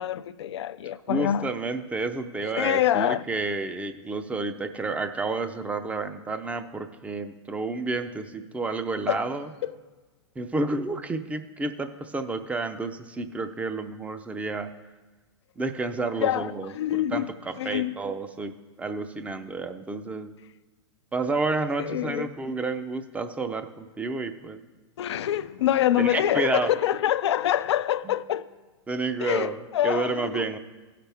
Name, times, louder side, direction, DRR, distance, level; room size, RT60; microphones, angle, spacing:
voice 1, 0.0-1.5 2.5-3.2 9.1-9.2 9.6-9.7 16.2-17.3 17.6-17.9 21.8-22.3 25.0-28.5 29.2-30.4, left 11 dB, 75° left, 0.4 m, -25 dB
voice 2, 1.1-9.5 10.4-14.7 15.6-18.5 18.8-20.3 21.1-24.6 26.0-26.7 28.1-28.2 28.9-30.6, right 3 dB, 10° right, 0.5 m, -30 dB
16.0 x 5.8 x 3.4 m
hypercardioid pair, 115°, 15 cm